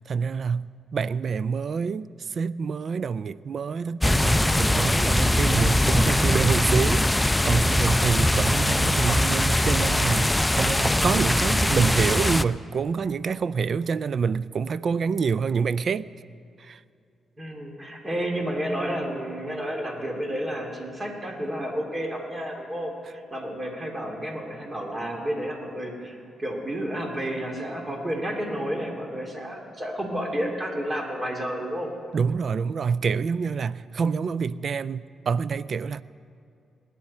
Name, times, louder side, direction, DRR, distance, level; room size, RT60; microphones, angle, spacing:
voice 1, 0.1-16.1 16.6-16.8 32.1-36.0, right 5 dB, 60° right, 0.3 m, -27 dB
sound 1, 4.0-12.4, left 1 dB, 15° left, 0.4 m, -22 dB
voice 2, 17.4-31.9, equal, 30° right, 3.0 m, -31 dB
20.5 x 10.5 x 4.3 m
supercardioid pair, 55°, 0 cm